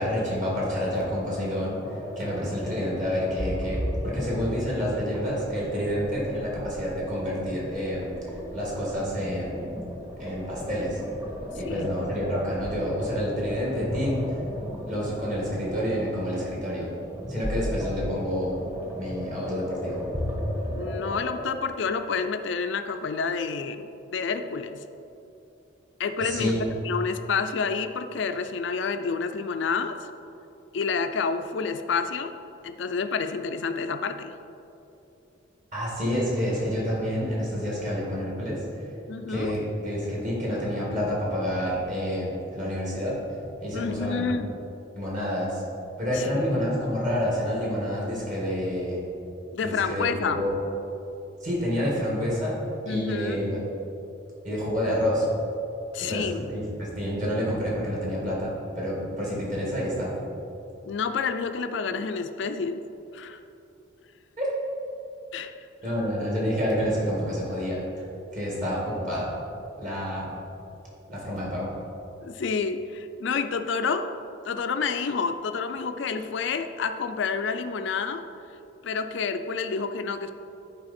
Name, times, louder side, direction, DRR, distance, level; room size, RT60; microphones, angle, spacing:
voice 1, 0.0-8.1 8.5-9.8 10.2-11.0 11.5-14.2 14.9-16.9 17.3-18.6 18.9-20.0 26.2-26.6 35.7-38.6 39.3-43.2 43.6-44.2 45.0-45.6 46.0-49.0 49.6-50.6 51.4-52.6 52.9-53.6 54.4-55.3 56.0-60.1 64.4-64.5 65.8-68.1 68.3-69.3 69.8-70.3 71.1-71.7, equal, 40° right, -5 dB, 1.9 m, -28 dB
sound 1, 1.8-21.5, equal, 10° right, 0.9 m, -35 dB
voice 2, 11.6-11.9 20.7-24.8 26.0-26.6 26.8-30.1 30.7-32.3 32.6-34.3 39.1-39.6 43.7-44.5 46.1-46.3 49.5-50.5 52.9-53.4 55.9-56.4 60.9-62.8 63.1-63.4 65.3-65.5 72.2-74.1 74.4-78.2 78.8-80.3, left 5 dB, 65° left, 8 dB, 0.4 m, -29 dB
10.5 x 4.7 x 4.2 m, 2.8 s
head